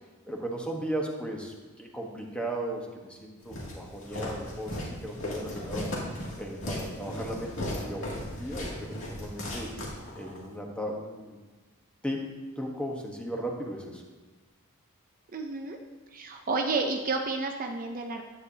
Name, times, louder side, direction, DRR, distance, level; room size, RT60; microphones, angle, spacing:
voice 1, 0.3-5.9 6.4-9.7 10.2-11.4 12.0-12.3 12.6-14.0, right 1 dB, 5° left, 0 dB, 1.1 m, -36 dB
Walk footsteps, 3.5-10.4, left 1 dB, 65° left, 2.4 m, -36 dB
voice 2, 15.3-15.8 16.1-18.2, right 3 dB, 40° right, 3 dB, 0.5 m, -30 dB
9.8 x 9.7 x 2.8 m, 1.3 s
head